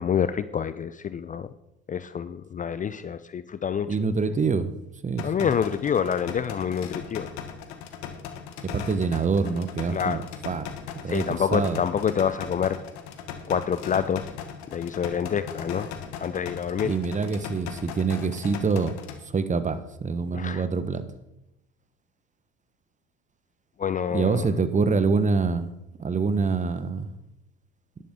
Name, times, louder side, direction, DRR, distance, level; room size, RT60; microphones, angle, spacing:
voice 1, 0.0-1.5 1.9-3.9 5.2-7.3 9.9-10.2 11.1-12.8 13.5-14.3 14.7-15.9 16.2-16.9 20.3-20.6 23.8-24.5, left 7 dB, 25° left, 14 dB, 0.5 m, -27 dB
voice 2, 3.9-4.7 5.0-5.5 8.6-11.8 16.8-18.9 19.3-21.0 24.1-25.7 26.0-27.1, right 4 dB, 25° right, 12 dB, 1.1 m, -26 dB
sound 1, 5.2-19.2, left 7 dB, 65° left, 1.5 m, -38 dB
12.0 x 11.0 x 3.7 m, 0.88 s
hypercardioid pair, 65°, 30 cm